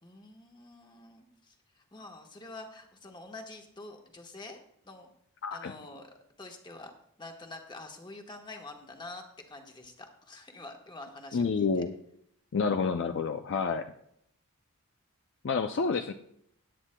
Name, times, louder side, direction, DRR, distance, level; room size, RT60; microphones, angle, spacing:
voice 1, 0.0-4.6 4.8-5.1 5.5-6.9 7.2-11.8 15.9-16.1, left 2 dB, 20° left, 3 dB, 1.2 m, -47 dB
voice 2, 5.4-5.7 11.3-11.9 12.5-13.9 15.4-16.1, left 5 dB, 55° left, 7 dB, 0.4 m, -29 dB
17.5 x 9.9 x 2.2 m, 0.71 s
head